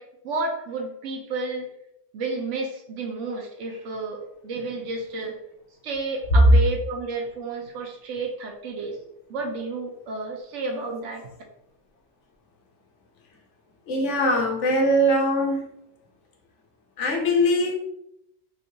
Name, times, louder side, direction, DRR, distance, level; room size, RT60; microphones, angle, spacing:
voice 1, 0.0-1.7 2.1-5.4 5.8-9.0 9.3-11.3, right 3 dB, 75° right, 1.0 m, -31 dB
voice 2, 13.9-15.6 17.0-17.7, equal, 75° left, 1.0 m, -21 dB
3.5 x 2.7 x 2.6 m
omnidirectional pair, 1.3 m